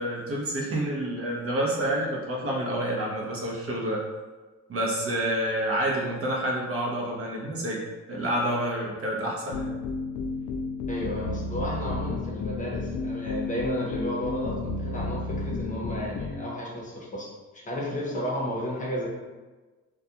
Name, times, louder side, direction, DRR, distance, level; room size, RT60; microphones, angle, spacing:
voice 1, 0.0-4.0 4.7-7.8 8.1-9.7, right 1 dB, 50° right, -3 dB, 0.7 m, -28 dB
sound 1, 9.5-16.4, left 3 dB, 80° left, 0.5 m, -32 dB
voice 2, 10.9-17.3 17.6-19.1, equal, 25° left, -4 dB, 0.7 m, -32 dB
2.3 x 2.2 x 2.8 m, 1.3 s
cardioid pair, 90°, 30 cm